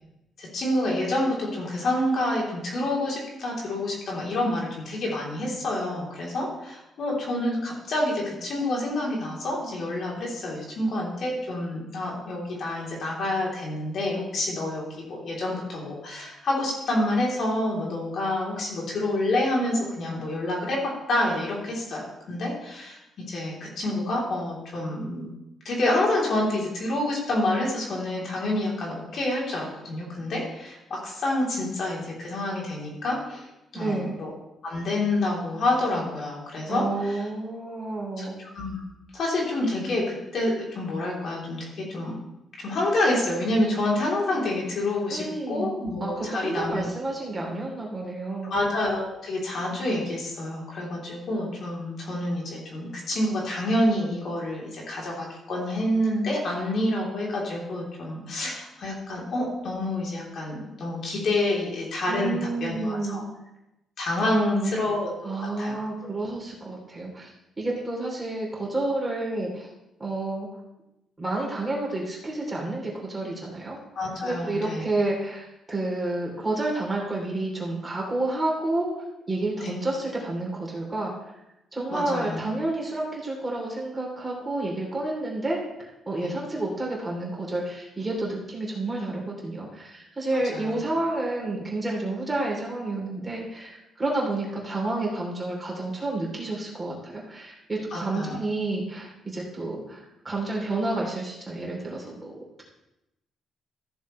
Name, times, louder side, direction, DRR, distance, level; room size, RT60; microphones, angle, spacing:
voice 1, 0.4-23.0 23.3-25.3 25.6-33.5 33.7-34.3 34.6-36.8 38.2-38.8 39.1-42.2 42.6-46.8 48.5-63.2 64.0-65.8 73.9-74.9 79.6-79.7 81.9-82.4 86.2-86.3 90.5-90.8 97.9-98.4, left 1 dB, 60° left, -3 dB, 3.2 m, -28 dB
voice 2, 33.7-34.2 36.7-38.4 45.1-45.7 46.0-48.6 62.1-63.3 64.2-64.7 65.2-69.7 70.0-70.5 71.2-73.8 74.2-81.1 81.7-102.6, right 2 dB, 20° right, -3 dB, 3.1 m, -30 dB
14.5 x 6.9 x 3.2 m, 0.90 s
cardioid pair, 90°, 0 cm